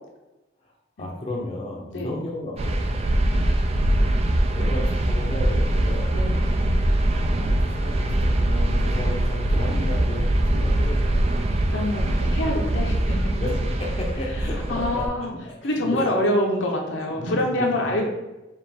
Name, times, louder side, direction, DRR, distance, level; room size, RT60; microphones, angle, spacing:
voice 1, 0.6-3.2 4.5-6.2 7.4-11.4 13.4-16.1 17.0-17.7, left 1 dB, 30° left, -2 dB, 0.6 m, -34 dB
sound 1, 2.6-15.1, right 1 dB, 35° right, 0.3 m, -22 dB
voice 2, 11.7-13.2 14.7-15.3 15.6-18.0, left 1 dB, 70° left, 0 dB, 0.8 m, -25 dB
5.1 x 2.5 x 3.4 m, 1.0 s
head